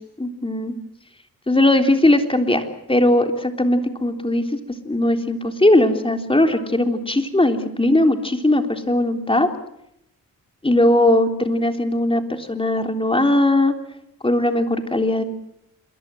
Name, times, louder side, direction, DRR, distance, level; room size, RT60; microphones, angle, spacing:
voice 1, 0.2-0.7 1.5-4.6 4.9-9.5 10.6-13.8 14.2-15.2, left 1 dB, 15° left, 6 dB, 3.5 m, -19 dB
27.5 x 22.5 x 7.7 m, 0.77 s
cardioid pair, 70°, 35 cm